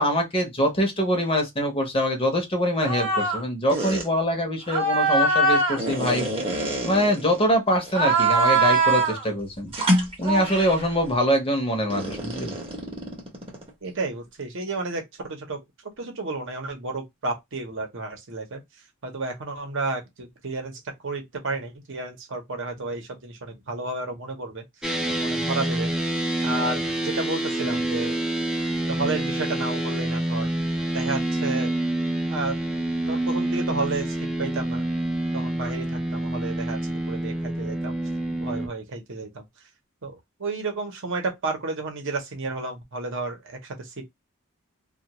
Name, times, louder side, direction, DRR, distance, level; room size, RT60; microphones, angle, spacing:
voice 1, 0.0-6.3 6.8-9.7 10.2-12.5, equal, 25° left, 0.8 m, -24 dB
sound 1, 2.8-3.4 3.7-4.1 4.7-7.4 7.9-9.2 9.7-10.8 11.9-13.7, right 2 dB, 25° right, 0.8 m, -23 dB
voice 2, 13.8-15.6 16.0-18.6 19.0-24.6 25.2-25.9 26.4-28.2 28.9-30.5 30.9-31.7 32.3-32.6 33.1-34.8 35.3-35.9 36.1-37.9 38.4-39.4 40.0-43.9, right 3 dB, 60° right, 0.8 m, -31 dB
sound 2, 24.8-38.7, right 1 dB, 5° right, 0.4 m, -27 dB
2.3 x 2.3 x 2.9 m
head